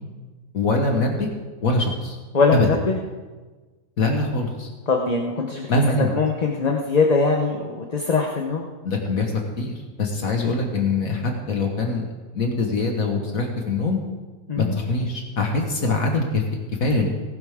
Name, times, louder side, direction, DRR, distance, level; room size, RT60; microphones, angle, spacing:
voice 1, 0.5-1.3 1.6-2.2 2.5-2.7 4.0-4.7 5.7-6.1 8.8-14.0 14.6-16.4 16.8-17.1, left 3 dB, 70° left, 2 dB, 1.9 m, -23 dB
voice 2, 2.3-3.0 4.9-5.7 6.0-8.7 14.5-14.8, left 4 dB, 30° left, 1 dB, 1.0 m, -22 dB
18.5 x 11.5 x 3.7 m, 1.3 s
omnidirectional pair, 1.5 m